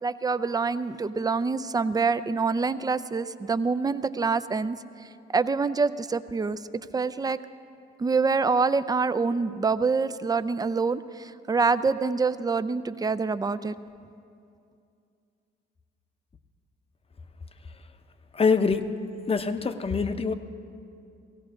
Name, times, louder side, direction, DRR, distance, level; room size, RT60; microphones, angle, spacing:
voice 1, 0.0-4.8 5.3-6.6 6.9-7.4 8.0-13.8, right 4 dB, 20° right, 13 dB, 0.4 m, -26 dB
voice 2, 18.3-18.9 19.3-20.3, left 5 dB, 30° left, 8 dB, 0.7 m, -24 dB
17.0 x 16.5 x 3.8 m, 2.5 s
cardioid pair, 90°, 20 cm